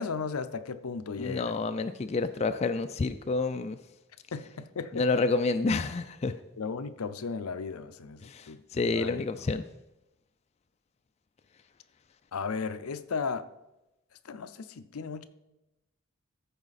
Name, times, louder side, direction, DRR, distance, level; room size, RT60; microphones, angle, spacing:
voice 1, 0.0-1.6 4.3-5.2 6.6-8.6 8.9-9.2 12.3-13.4 14.2-15.2, left 5 dB, 85° left, 0.6 m, -35 dB
voice 2, 1.2-3.8 4.9-6.3 8.2-9.6, left 3 dB, 30° left, 0.3 m, -29 dB
14.0 x 4.9 x 4.1 m
head